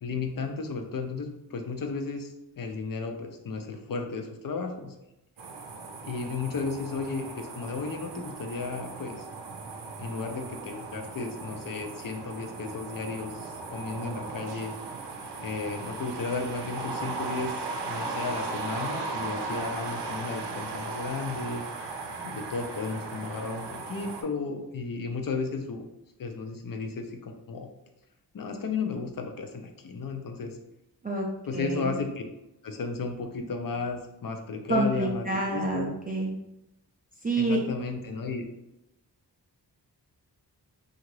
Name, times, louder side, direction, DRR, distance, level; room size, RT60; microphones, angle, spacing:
voice 1, 0.0-4.9 6.0-9.3 10.0-14.7 15.4-21.6 22.2-25.8 26.2-27.7 28.3-30.6 31.5-32.2 32.6-35.9 37.4-38.5, left 4 dB, 55° left, 4 dB, 0.5 m, -34 dB
sound 1, 5.4-24.2, right 3 dB, 85° right, 0.5 m, -37 dB
voice 2, 31.5-31.9 34.7-36.3 37.2-37.6, right 2 dB, 20° right, -2 dB, 0.4 m, -27 dB
2.8 x 2.5 x 3.0 m, 0.90 s
wide cardioid pair, 70°, 40 cm